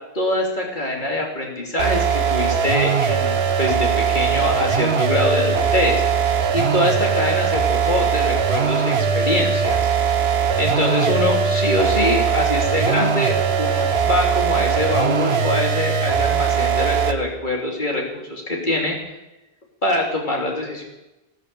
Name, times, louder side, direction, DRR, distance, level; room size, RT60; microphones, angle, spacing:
voice 1, 0.1-9.8 10.5-18.0 18.3-19.0 19.8-20.8, left 1 dB, 50° left, 0 dB, 3.2 m, -24 dB
sound 1, 1.8-17.3, right 7 dB, 85° right, 1.3 m, -20 dB
15.0 x 12.5 x 6.8 m, 1.0 s
omnidirectional pair, 1.0 m